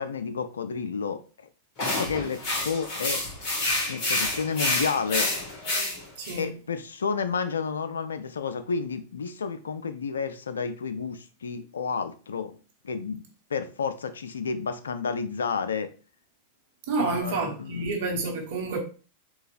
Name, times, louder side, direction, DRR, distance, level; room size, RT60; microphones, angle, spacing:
voice 1, 0.0-1.5 1.8-3.2 3.9-5.3 6.4-12.6 12.8-13.2 13.5-15.9 17.0-18.0, left 5 dB, 80° left, 0.3 m, -31 dB
sound 1, 1.8-6.4, left 2 dB, 45° left, 1.8 m, -28 dB
voice 2, 6.2-6.6 16.9-18.8, right 3 dB, 65° right, 1.0 m, -29 dB
3.8 x 2.8 x 2.5 m
hypercardioid pair, 95°, 0 cm